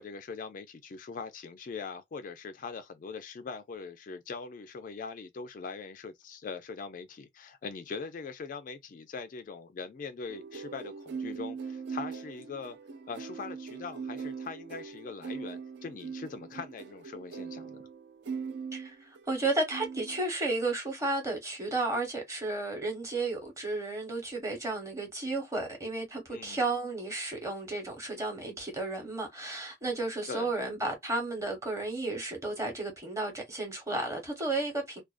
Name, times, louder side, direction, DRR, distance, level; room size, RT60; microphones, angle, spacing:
voice 1, 0.0-12.8 13.1-17.8 26.3-26.6 30.3-30.7, left 5 dB, 45° left, 0.3 m, -42 dB
sound 1, 10.3-19.4 19.7-20.2, right 5 dB, 65° right, 0.4 m, -41 dB
voice 2, 18.7-35.0, right 2 dB, 15° right, 0.9 m, -33 dB
2.4 x 2.2 x 2.3 m
head